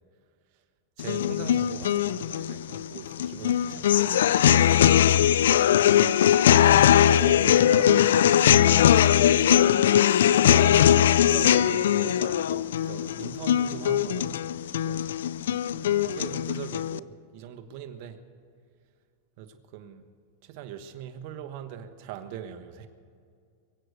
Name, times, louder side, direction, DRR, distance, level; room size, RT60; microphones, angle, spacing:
sound 1, 1.0-17.0, left 10 dB, 80° left, 0.3 m, -21 dB
voice 1, 1.0-4.3 5.9-6.1 6.5-8.9 9.9-10.3 10.5-14.4 14.7-15.1 15.9-18.2 19.4-20.0 20.4-22.9, right 9 dB, 55° right, 6 dB, 1.2 m, -41 dB
23.0 x 8.0 x 6.6 m, 2.3 s
hypercardioid pair, 130°, 0 cm